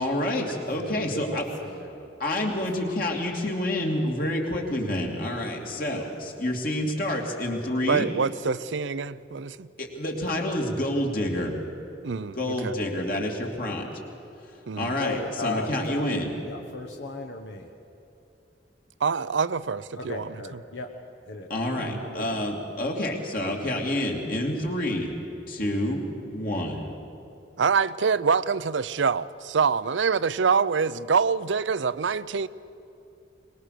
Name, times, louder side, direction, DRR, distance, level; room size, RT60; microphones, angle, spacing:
voice 1, 0.0-1.5 2.2-8.1 9.8-11.6 12.3-13.9 14.8-16.3 21.5-25.1 25.5-26.9, left 1 dB, 50° left, 2.9 m, -28 dB
voice 2, 0.7-2.1 2.8-3.1 15.0-17.7 20.0-20.9 21.3-21.5 22.0-22.4, left 2 dB, 75° left, 1.3 m, -36 dB
voice 3, 7.9-9.7 12.0-12.4 12.6-12.7 14.7-15.0 19.0-20.6 21.8-22.0 27.6-32.5, right 5 dB, 85° right, 0.6 m, -25 dB
23.5 x 20.5 x 6.8 m
head